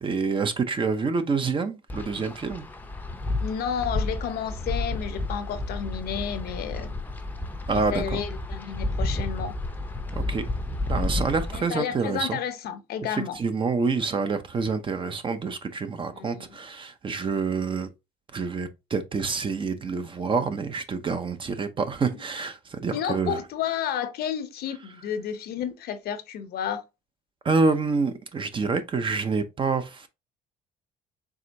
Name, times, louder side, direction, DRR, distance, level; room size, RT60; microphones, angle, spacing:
voice 1, 0.0-2.6 7.7-8.2 10.1-10.4 10.9-12.4 13.1-17.9 18.3-23.4 27.4-30.1, right 4 dB, 30° right, 0.7 m, -27 dB
Wind, 1.9-11.7, left 2 dB, 10° left, 0.7 m, -31 dB
voice 2, 3.4-6.9 7.8-9.5 11.5-13.4 16.1-16.5 22.1-22.2 22.9-26.8, left 8 dB, 70° left, 0.8 m, -31 dB
4.8 x 3.3 x 2.7 m
cardioid pair, 110°, 17 cm